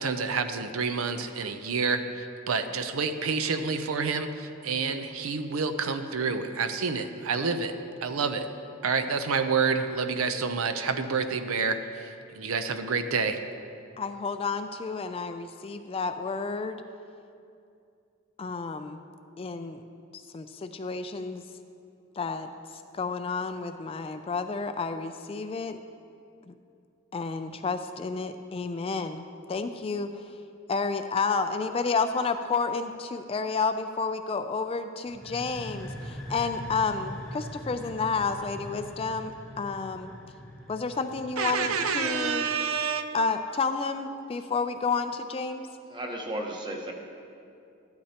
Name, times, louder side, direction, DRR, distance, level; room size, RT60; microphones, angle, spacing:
voice 1, 0.0-7.7 8.0-8.5 8.8-13.4 41.4-43.0, right 5 dB, 80° right, 9 dB, 0.6 m, -28 dB
voice 2, 14.0-16.8 18.4-19.0 19.4-19.8 20.3-21.4 22.2-22.5 22.9-25.8 26.5-26.6 27.1-30.1 30.7-39.3 39.6-40.1 40.7-42.5 43.1-45.7, left 4 dB, 25° left, 8 dB, 0.3 m, -30 dB
sound 1, 35.1-42.7, equal, ahead, 1.2 m, -42 dB
voice 3, 45.9-46.9, right 1 dB, 20° right, 1 dB, 1.0 m, -34 dB
13.5 x 11.5 x 2.9 m, 2.5 s
head